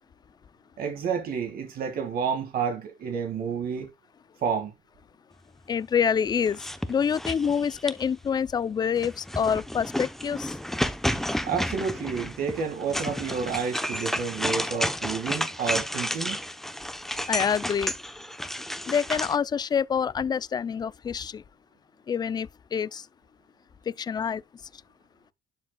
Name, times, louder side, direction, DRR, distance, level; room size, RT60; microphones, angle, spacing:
voice 1, 0.8-3.9 4.4-4.7 11.4-16.4, right 6 dB, 60° right, 1.9 m, -30 dB
voice 2, 5.7-10.6 17.3-18.0 18.9-21.4 22.1-23.1 23.9-24.4, left 7 dB, 25° left, 0.3 m, -27 dB
sound 1, 6.5-8.2 9.0-19.4, equal, ahead, 0.7 m, -31 dB
11.5 x 5.1 x 2.2 m
cardioid pair, 110°, 17 cm